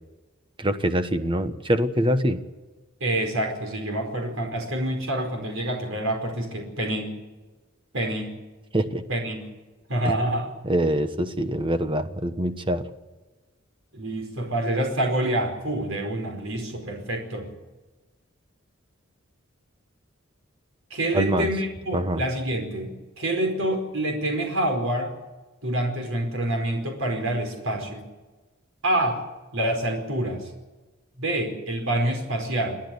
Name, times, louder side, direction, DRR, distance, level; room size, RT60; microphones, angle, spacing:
voice 1, 0.6-2.4 8.7-9.0 10.0-10.1 10.6-12.8 21.1-21.5 21.9-22.2, equal, 25° right, 9 dB, 1.3 m, -24 dB
voice 2, 3.0-7.2 7.9-8.4 9.1-9.5 9.9-10.5 13.9-17.5 20.9-25.1 25.6-28.1 28.8-29.2 29.5-30.5 31.2-32.8, right 1 dB, 75° right, 3 dB, 4.9 m, -27 dB
30.0 x 10.5 x 8.5 m, 1.2 s
head